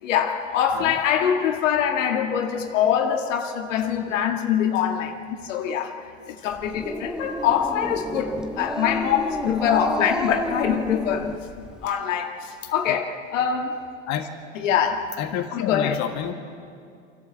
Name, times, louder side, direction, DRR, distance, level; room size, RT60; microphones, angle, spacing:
voice 1, 0.0-6.0 6.3-11.5 11.8-13.9 14.5-15.2 15.6-16.0, left 8 dB, 70° left, 1.9 m, -24 dB
Growling, 6.5-11.9, equal, ahead, 1.2 m, -31 dB
voice 2, 12.6-13.0 14.1-14.3 15.2-16.3, left 10 dB, 45° left, 1.8 m, -29 dB
28.5 x 12.0 x 7.5 m
hypercardioid pair, 100°, 39 cm